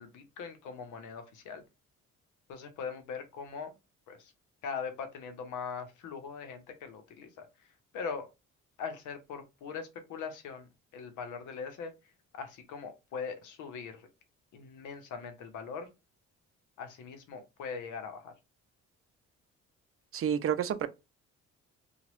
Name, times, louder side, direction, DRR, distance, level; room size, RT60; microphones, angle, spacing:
voice 1, 0.0-1.6 2.5-3.7 4.1-4.3 4.6-7.5 7.9-8.3 8.8-11.9 12.3-14.1 14.5-15.9 16.8-18.3, left 5 dB, 85° left, 0.8 m, -41 dB
voice 2, 20.1-20.9, right 9 dB, 45° right, 0.5 m, -29 dB
2.9 x 2.3 x 3.0 m
cardioid pair, 90°, 30 cm